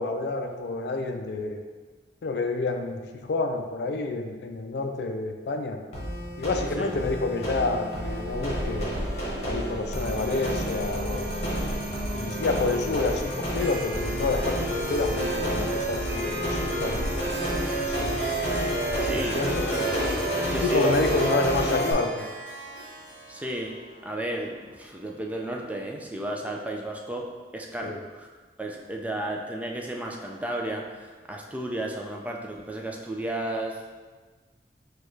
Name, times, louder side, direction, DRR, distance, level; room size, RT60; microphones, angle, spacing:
voice 1, 0.0-1.6 2.2-5.8 6.4-8.9 9.4-11.5 12.1-17.1 17.8-18.2 19.0-19.6 20.5-22.3 27.8-28.0, left 3 dB, 65° left, 5 dB, 0.4 m, -29 dB
sound 1, 5.9-21.9, right 1 dB, 40° left, 1.1 m, -29 dB
Wind, 7.9-19.6, right 1 dB, 85° right, 0.4 m, -38 dB
Harp, 13.5-25.4, right 2 dB, 55° right, 0.9 m, -41 dB
voice 2, 19.0-19.5 19.8-19.9 20.4-21.0 23.3-27.3 27.5-28.3 28.6-33.8, right 1 dB, 10° right, 0 dB, 0.3 m, -33 dB
6.3 x 2.3 x 3.1 m, 1.4 s
head